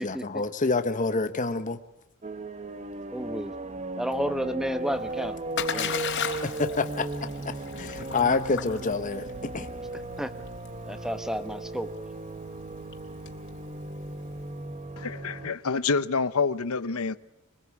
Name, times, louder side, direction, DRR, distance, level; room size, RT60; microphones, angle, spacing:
voice 1, 0.0-1.8 6.4-7.0 7.8-9.7, left 3 dB, 35° left, 1.1 m, -27 dB
sound 1, 2.2-15.5, right 2 dB, 30° right, 0.9 m, -37 dB
voice 2, 3.1-3.5 4.0-5.4 5.7-6.0 10.2-10.3 10.8-11.9, equal, ahead, 1.2 m, -31 dB
Splash splatter, 4.9-14.7, left 7 dB, 55° left, 3.3 m, -37 dB
voice 3, 15.0-17.1, left 4 dB, 75° left, 0.9 m, -27 dB
24.0 x 21.5 x 8.5 m
head